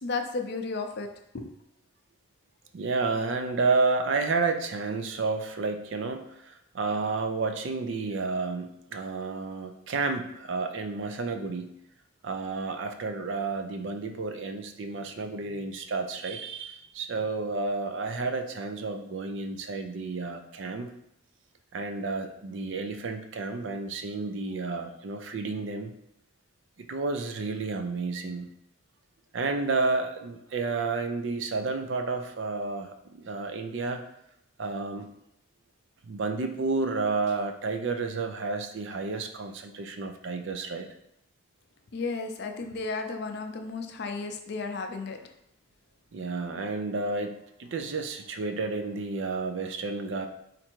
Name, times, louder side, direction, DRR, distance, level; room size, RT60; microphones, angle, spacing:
voice 1, 0.0-1.1 1.3-1.5 41.9-45.3, left 3 dB, 50° left, 5 dB, 0.5 m, -33 dB
voice 2, 2.7-11.7 12.2-20.9 21.7-25.9 26.8-28.5 29.3-34.0 34.6-35.1 36.0-40.9 46.1-50.3, right 3 dB, 60° right, 7 dB, 0.4 m, -31 dB
4.3 x 2.6 x 4.5 m, 0.80 s
head